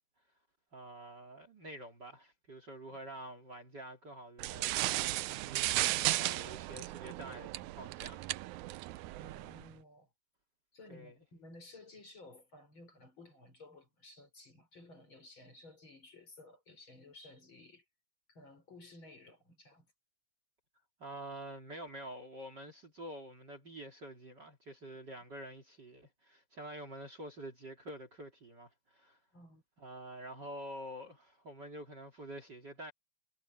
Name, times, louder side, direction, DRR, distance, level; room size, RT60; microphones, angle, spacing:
voice 1, 0.7-8.2 10.9-11.1 21.0-29.2 29.8-32.9, right 1 dB, 35° right, 3.1 m, -47 dB
sound 1, 4.4-9.7, right 17 dB, 75° right, 1.9 m, -35 dB
voice 2, 9.1-10.1 10.7-17.8 18.3-19.9 29.3-29.6, left 2 dB, 35° left, 6.3 m, -55 dB
omnidirectional pair, 3.7 m